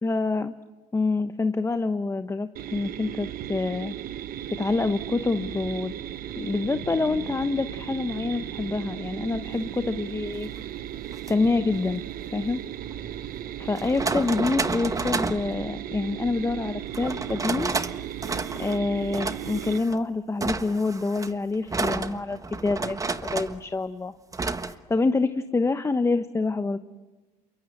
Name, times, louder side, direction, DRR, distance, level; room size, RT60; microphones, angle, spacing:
voice 1, 0.0-0.5 0.9-3.9 4.6-5.9 6.4-10.5 11.3-12.0 12.3-12.6 13.7-17.7 18.6-24.1 24.6-26.8, left 3 dB, 15° left, 10 dB, 1.0 m, -26 dB
sound 1, 2.6-19.8, right 11 dB, 45° right, 1.0 m, -36 dB
sound 2, 5.3-13.6, right 6 dB, 70° right, 5.0 m, -48 dB
sound 3, 11.1-11.3 12.9-13.0 13.7-15.5 16.9-17.9 18.2-18.8 19.1-20.0 20.4-23.6 24.3-24.7, right 3 dB, 15° right, 1.4 m, -30 dB
29.5 x 23.0 x 8.0 m, 1.2 s
supercardioid pair, 90°, 20 cm